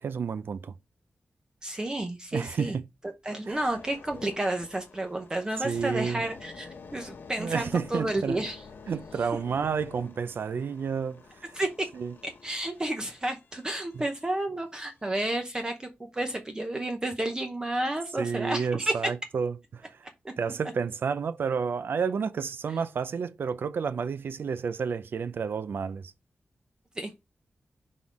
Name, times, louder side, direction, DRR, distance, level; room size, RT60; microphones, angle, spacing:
voice 1, 0.0-0.7 2.3-2.8 3.5-3.6 5.6-6.2 7.4-8.4 8.9-11.2 11.9-12.1 13.9-14.0 18.2-20.0 20.4-26.1, right 6 dB, 70° right, 0.5 m, -30 dB
voice 2, 1.6-2.8 3.2-8.6 11.5-11.7 12.4-18.9 20.2-20.3 27.0-27.1, right 1 dB, 20° right, 0.8 m, -31 dB
sound 1, 3.5-14.5 15.0-15.2, left 4 dB, 65° left, 0.9 m, -49 dB
6.1 x 3.7 x 4.7 m
wide cardioid pair, 150°, 4 cm